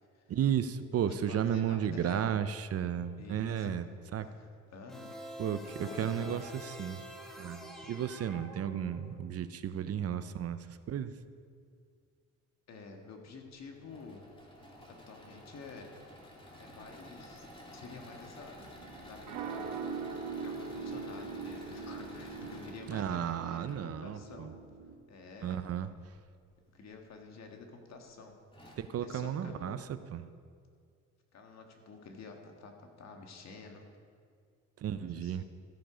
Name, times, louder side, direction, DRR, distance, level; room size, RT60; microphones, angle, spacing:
voice 1, 0.3-3.8 4.1-4.3 5.4-7.0 7.4-11.2 22.9-24.5 25.4-25.9 28.8-30.2 34.8-35.4, right 9 dB, 50° right, 12 dB, 0.6 m, -34 dB
voice 2, 1.0-2.4 3.2-3.7 4.2-5.2 5.8-6.4 9.0-9.2 12.7-14.2 14.9-15.9 16.6-17.5 17.7-18.7 19.0-19.8 20.1-24.5 25.1-25.6 26.7-28.4 28.7-29.8 31.3-33.8 35.1-35.4, left 4 dB, 60° left, 3 dB, 1.7 m, -50 dB
sound 1, 4.9-9.2, equal, ahead, 1.5 m, -47 dB
Engine / Mechanisms, 13.7-23.9 25.5-26.2 26.8-26.9 27.2-27.3 28.1-28.2 28.5-28.7, left 1 dB, 15° left, 2.5 m, -51 dB
sound 2, 18.6-24.9, right 5 dB, 80° right, 1.1 m, -42 dB
13.5 x 7.4 x 5.0 m, 2.1 s
cardioid pair, 90°, 30 cm